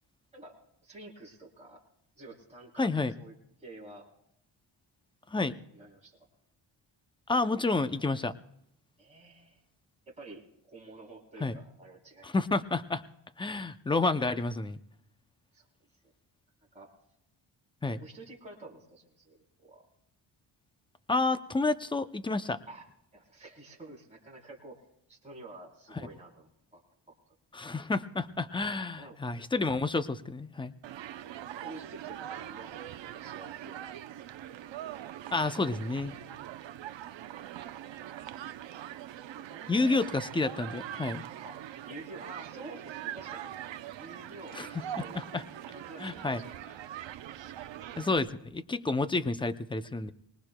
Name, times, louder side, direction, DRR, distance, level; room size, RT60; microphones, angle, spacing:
voice 1, 0.3-1.8 2.2-3.3 3.6-4.1 5.7-6.3 9.0-9.6 10.1-12.3 15.5-15.7 16.7-16.9 18.0-19.9 22.7-22.9 23.1-26.8 27.1-27.2 29.0-29.2 31.6-33.8 39.3-40.0 41.4-43.5 43.9-45.2 45.7-46.7, right 2 dB, 15° right, -3 dB, 3.3 m, -49 dB
voice 2, 2.8-3.1 5.3-5.6 7.3-8.3 11.4-11.6 12.2-13.0 13.4-14.8 17.8-18.0 21.1-22.6 27.5-30.7 35.3-36.2 39.7-41.2 44.6-44.7 45.0-45.4 46.0-46.4 48.0-50.1, left 3 dB, 10° left, 11 dB, 0.4 m, -30 dB
Human group actions, 30.8-48.2, right 11 dB, 70° right, 0.7 m, -42 dB
24.5 x 20.0 x 2.2 m, 0.77 s
wide cardioid pair, 160°, 47 cm